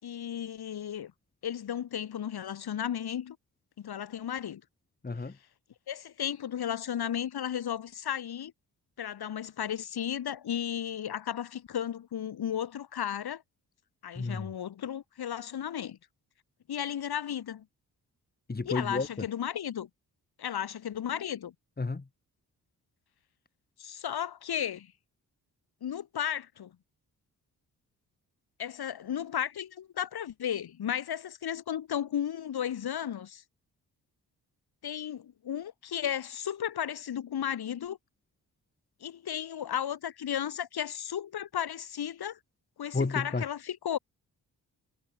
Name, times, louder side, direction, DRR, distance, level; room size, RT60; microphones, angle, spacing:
voice 1, 0.0-1.1 1.4-3.4 3.8-4.6 5.9-8.5 9.0-13.4 14.0-16.0 16.7-17.6 18.7-19.9 20.4-21.5 23.8-24.9 25.8-26.7 28.6-33.4 34.8-38.0 39.0-42.4 42.8-44.0, left 9 dB, 75° left, 3.9 m, -34 dB
voice 2, 5.0-5.4 14.2-14.5 18.5-19.3 21.8-22.1 42.9-43.4, left 3 dB, 25° left, 2.4 m, -32 dB
cardioid pair, 60°, 38 cm